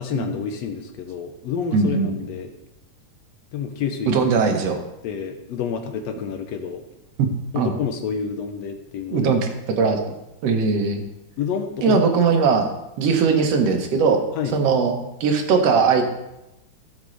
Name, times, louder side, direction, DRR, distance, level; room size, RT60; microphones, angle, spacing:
voice 1, 0.0-2.5 3.5-4.1 5.0-6.8 7.5-9.3 11.4-12.0 14.4-14.6, left 7 dB, 70° left, 5 dB, 1.7 m, -28 dB
voice 2, 1.7-2.3 4.1-4.8 7.2-7.7 9.1-10.0 10.4-11.0 11.8-12.7 13.0-14.2 14.5-16.0, right 5 dB, 60° right, 4 dB, 1.8 m, -20 dB
15.5 x 6.7 x 3.2 m, 0.92 s
omnidirectional pair, 3.7 m